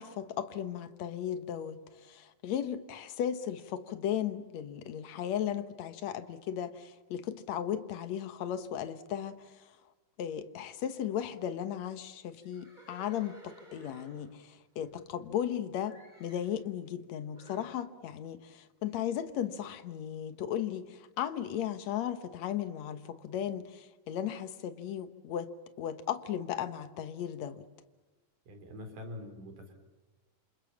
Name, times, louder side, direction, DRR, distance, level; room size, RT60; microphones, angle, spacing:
voice 1, 0.0-9.7 10.2-25.5 25.8-27.7, left 10 dB, 60° left, 2.1 m, -36 dB
Livestock farm animals working animals, 12.4-15.5 15.8-16.5 17.3-17.7, right 1 dB, 10° right, 7.7 m, -55 dB
voice 2, 28.5-29.7, left 1 dB, 60° right, 5.4 m, -44 dB
28.0 x 27.5 x 7.3 m
omnidirectional pair, 4.1 m